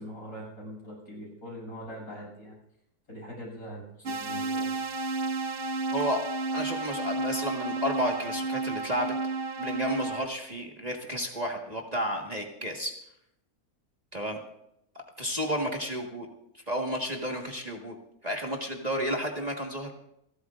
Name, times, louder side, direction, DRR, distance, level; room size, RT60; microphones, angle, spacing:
voice 1, 0.0-2.6 3.1-4.7, equal, 65° left, -4 dB, 8.2 m, -42 dB
sound 1, 4.1-10.3, right 3 dB, 55° right, 0.6 m, -32 dB
voice 2, 5.9-9.1 9.6-12.9 14.1-14.4 15.2-16.3 16.5-17.9 18.2-19.9, equal, 25° right, 0 dB, 1.7 m, -32 dB
29.0 x 12.5 x 2.5 m, 0.77 s
omnidirectional pair, 1.6 m